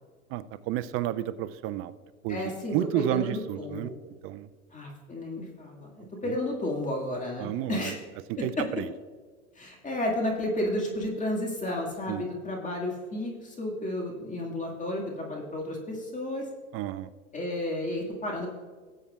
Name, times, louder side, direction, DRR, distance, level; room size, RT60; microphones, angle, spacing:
voice 1, 0.3-1.9 2.2-3.9 4.2-4.5 6.2-6.3 7.4-7.9 8.4-8.9 12.1-12.2 16.7-17.1, right 13 dB, 35° right, 15 dB, 0.4 m, -31 dB
voice 2, 2.3-3.9 4.7-8.0 8.6-8.7 9.6-16.5 17.3-18.5, left 1 dB, 15° left, -1 dB, 2.1 m, -32 dB
19.0 x 8.4 x 2.4 m, 1.5 s
hypercardioid pair, 105°, 43 cm